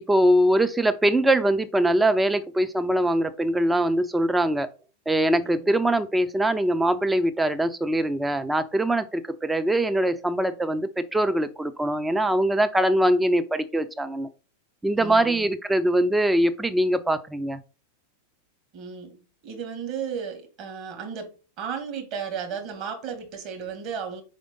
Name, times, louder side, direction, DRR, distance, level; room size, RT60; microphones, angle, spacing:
voice 1, 0.0-4.7 5.1-14.3 14.8-17.6, right 1 dB, 10° right, 0.6 m, -22 dB
voice 2, 15.0-15.5 18.7-21.3 21.6-24.2, right 6 dB, 40° right, 2.0 m, -34 dB
5.0 x 4.9 x 3.9 m
figure-of-eight pair, 90°, 0 cm